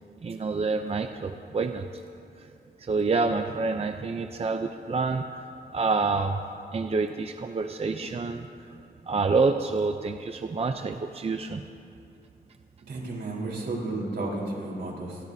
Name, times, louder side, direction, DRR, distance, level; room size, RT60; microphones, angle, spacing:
voice 1, 0.2-1.9 2.4-2.5 2.8-5.4 5.7-6.4 6.7-8.8 9.0-11.6, right 4 dB, 35° right, 6 dB, 0.6 m, -27 dB
voice 2, 12.9-15.2, right 2 dB, 75° right, -2 dB, 4.1 m, -32 dB
27.0 x 18.0 x 2.8 m, 2.5 s
wide cardioid pair, 120°, 18 cm